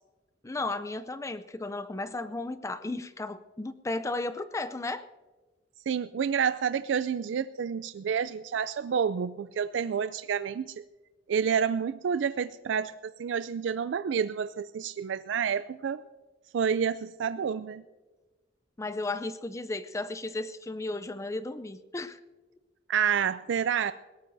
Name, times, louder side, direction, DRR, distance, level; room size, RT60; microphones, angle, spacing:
voice 1, 0.4-5.1 18.8-22.2, left 2 dB, 15° left, 12 dB, 0.5 m, -34 dB
voice 2, 5.9-10.7 11.3-16.0 16.5-17.8 22.9-23.9, right 7 dB, 75° right, 14 dB, 0.4 m, -29 dB
20.5 x 17.5 x 2.6 m, 1.3 s
head